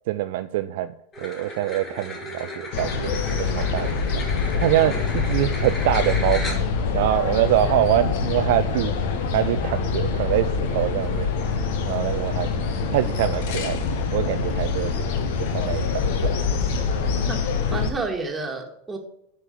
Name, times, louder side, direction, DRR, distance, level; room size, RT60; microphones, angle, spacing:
voice 1, 0.1-0.9 1.2-3.1 3.4-4.2 4.6-6.7 6.9-8.9 9.3-11.3 11.9-13.8 14.1-14.9 15.5-16.3, right 14 dB, 50° right, 11 dB, 0.4 m, -24 dB
sound 1, 1.1-6.9, left 1 dB, 25° left, 2.7 m, -35 dB
sound 2, 2.7-17.9, left 5 dB, 50° left, 1.3 m, -25 dB
voice 2, 17.3-19.0, right 3 dB, 10° right, 2 dB, 2.0 m, -30 dB
9.9 x 5.5 x 7.2 m, 0.78 s
figure-of-eight pair, 90°, 0 cm